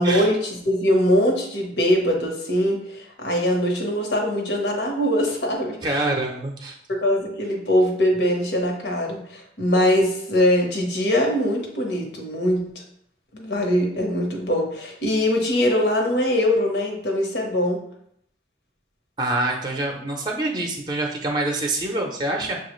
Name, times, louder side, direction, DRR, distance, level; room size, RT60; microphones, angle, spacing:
voice 1, 0.0-6.0 6.9-12.6 13.3-17.8, equal, 80° left, 1 dB, 1.0 m, -22 dB
voice 2, 5.8-6.8 19.2-22.6, right 2 dB, 25° right, 1 dB, 0.5 m, -26 dB
7.0 x 2.3 x 3.0 m, 0.71 s
head